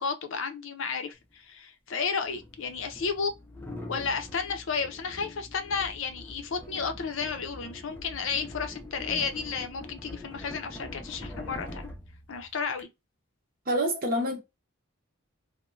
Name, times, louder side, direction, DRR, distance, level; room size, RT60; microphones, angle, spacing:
voice 1, 0.0-3.3 3.9-11.9 12.3-12.9, left 5 dB, 60° left, 0.5 m, -32 dB
sound 1, 1.2-1.3 2.2-12.8, left 1 dB, 10° left, 0.4 m, -43 dB
voice 2, 13.7-14.4, equal, 45° right, 0.8 m, -27 dB
3.0 x 2.1 x 2.4 m
head